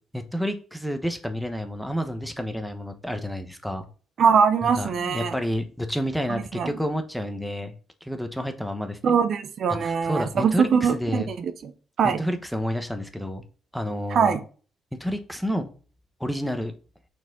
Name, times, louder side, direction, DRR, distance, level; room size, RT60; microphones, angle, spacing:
voice 1, 0.1-3.9 4.6-7.7 8.0-9.2 9.8-11.3 12.0-13.4 13.7-14.4 15.0-15.7 16.2-16.7, equal, ahead, 1.0 m, -30 dB
voice 2, 4.2-5.4 6.3-6.8 9.0-11.7 12.0-12.2 14.1-14.4, right 6 dB, 60° right, 0.7 m, -22 dB
5.9 x 4.6 x 3.8 m
cardioid pair, 90°, 0 cm